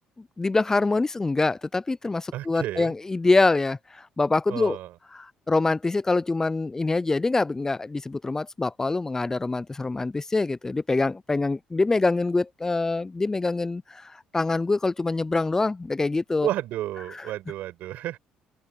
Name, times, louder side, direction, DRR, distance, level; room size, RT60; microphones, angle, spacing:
voice 1, 0.4-4.8 5.1-16.5, left 3 dB, 20° left, 0.4 m, -25 dB
voice 2, 2.3-2.9 4.5-4.9 16.4-18.2, right 14 dB, 75° right, 4.8 m, -31 dB
open air
supercardioid pair, 85°, 3 cm